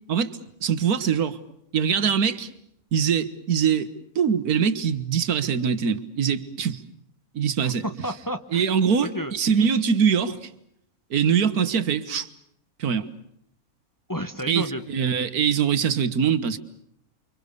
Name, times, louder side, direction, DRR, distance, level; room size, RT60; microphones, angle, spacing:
voice 1, 0.1-1.4 1.7-2.5 2.9-6.8 7.3-7.8 8.5-10.5 11.1-12.3 12.8-13.1 14.5-16.6, right 7 dB, 90° right, 1.8 m, -23 dB
voice 2, 7.6-8.6 9.0-9.3 14.1-14.8, equal, 15° left, 0.9 m, -31 dB
30.0 x 24.5 x 6.8 m
omnidirectional pair, 1.6 m